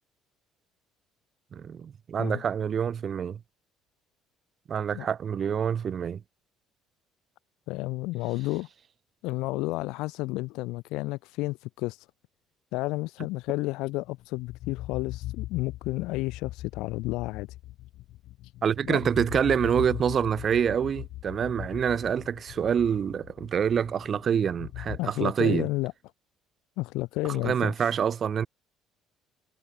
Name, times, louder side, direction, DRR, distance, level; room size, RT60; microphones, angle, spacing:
voice 1, 1.5-3.4 4.7-6.2 18.6-25.7 27.4-28.5, right 8 dB, 30° right, 1.0 m, -26 dB
voice 2, 7.7-8.7 9.2-12.0 12.7-17.5 18.8-19.0 25.0-25.9 26.8-27.7, left 21 dB, 80° left, 2.0 m, -31 dB
sound 1, 14.0-25.0, left 16 dB, 60° left, 1.3 m, -40 dB
cardioid pair, 175°, 0 cm